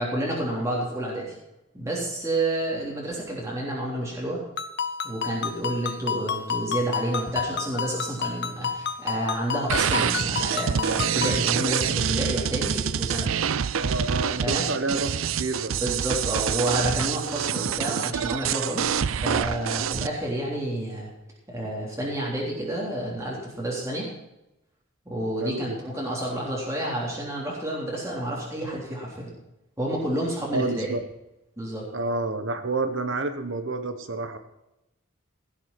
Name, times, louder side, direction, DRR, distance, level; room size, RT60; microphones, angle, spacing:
voice 1, 0.0-1.4 1.7-4.4 5.0-13.4 14.4-14.6 15.8-21.1 21.5-24.1 25.1-29.3 29.8-30.9 31.6-31.9, right 1 dB, 15° right, -4 dB, 3.4 m, -29 dB
Ringtone, 4.6-11.4, left 6 dB, 55° left, 0.8 m, -31 dB
sound 1, 9.7-20.1, right 8 dB, 85° right, 0.5 m, -26 dB
voice 2, 13.8-15.7 25.4-25.8 30.5-31.0 31.9-34.4, right 2 dB, 70° right, 9 dB, 1.3 m, -29 dB
16.0 x 7.4 x 6.1 m, 0.90 s
head